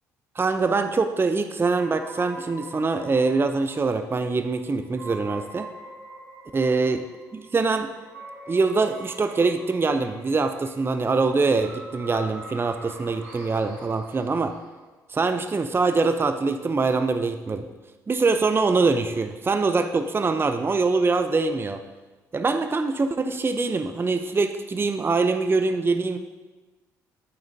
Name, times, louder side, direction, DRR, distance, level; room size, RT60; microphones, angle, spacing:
voice 1, 0.4-5.7 6.5-7.0 7.3-7.9 8.5-14.5 15.1-17.7 18.1-21.8 22.3-26.2, right 4 dB, 25° right, 7 dB, 0.6 m, -23 dB
sound 1, 1.7-14.8, right 1 dB, 85° right, 1.7 m, -44 dB
9.7 x 8.7 x 2.7 m, 1.3 s
hypercardioid pair, 50°, 9 cm